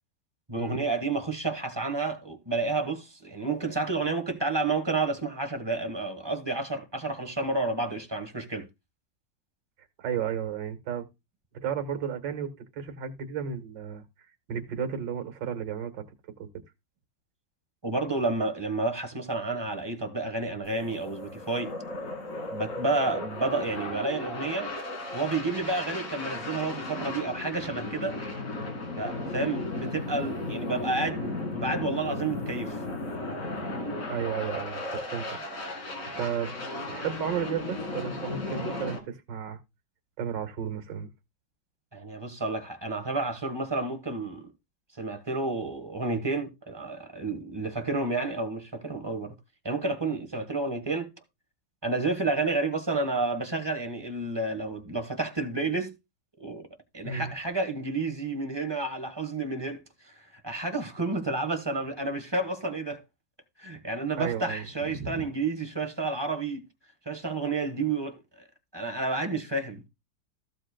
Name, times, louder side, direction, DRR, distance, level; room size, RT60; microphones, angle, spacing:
voice 1, 0.5-8.7 17.8-21.7 22.5-24.7 25.1-28.2 29.0-32.8 41.9-44.5 45.0-49.3 49.6-51.1 51.8-55.9 56.4-56.7 56.9-63.0 63.6-66.6 67.0-68.2 68.7-69.8, right 3 dB, 15° right, 1.2 m, -30 dB
voice 2, 10.0-11.1 11.6-14.0 14.5-16.0 16.4-16.5 34.1-35.7 36.2-39.6 40.2-41.1 57.0-57.3 64.2-65.3, right 8 dB, 80° right, 2.0 m, -33 dB
sound 1, 20.6-39.0, left 2 dB, 45° left, 2.3 m, -35 dB
15.0 x 7.7 x 2.2 m
omnidirectional pair, 1.9 m